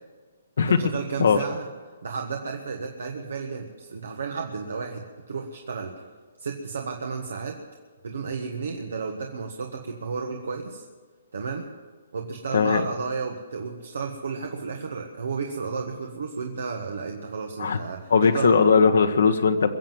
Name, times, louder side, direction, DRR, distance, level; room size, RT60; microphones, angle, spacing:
voice 1, 0.6-1.7 2.0-5.9 6.4-7.6 8.0-10.8 11.3-11.7 12.1-18.6, right 5 dB, 80° right, 3 dB, 1.4 m, -32 dB
voice 2, 12.5-12.8 17.6-17.8 18.1-19.7, left 5 dB, 80° left, 5 dB, 1.1 m, -19 dB
22.5 x 7.5 x 7.8 m, 1.4 s
hypercardioid pair, 150°, 0 cm